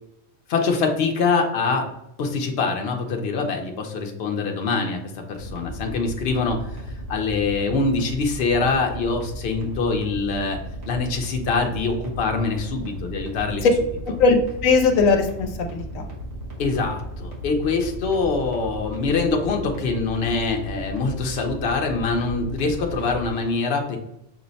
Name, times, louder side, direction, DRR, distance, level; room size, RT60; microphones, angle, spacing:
voice 1, 0.5-1.9 2.2-5.0 5.3-6.6 7.1-10.6 10.9-13.7 16.6-24.0, left 4 dB, 55° left, 3 dB, 0.9 m, -24 dB
sound 1, 5.4-23.3, equal, 80° right, 1.6 m, -35 dB
voice 2, 14.1-16.1, left 4 dB, 85° left, 4 dB, 1.0 m, -20 dB
6.2 x 2.1 x 4.0 m, 0.82 s
omnidirectional pair, 1.4 m